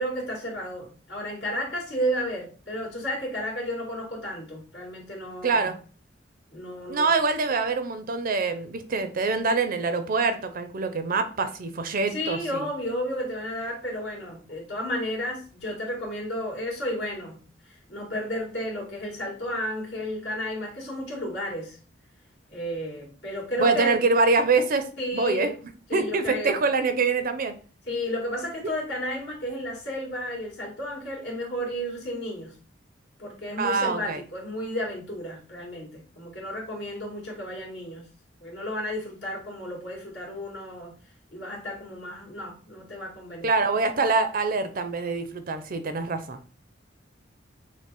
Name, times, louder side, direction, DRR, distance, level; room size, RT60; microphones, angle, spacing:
voice 1, 0.0-5.7 6.5-7.1 12.1-21.8 22.5-24.0 25.0-25.5 25.9-26.6 27.9-32.6 33.2-38.0 38.4-41.0 41.3-43.5, equal, 65° left, -3 dB, 2.1 m, -32 dB
voice 2, 5.4-5.8 6.9-12.7 23.6-24.9 25.1-25.5 25.9-27.5 33.6-34.2 43.4-46.4, right 4 dB, 50° right, 9 dB, 0.5 m, -25 dB
6.1 x 2.1 x 4.0 m, 0.40 s
head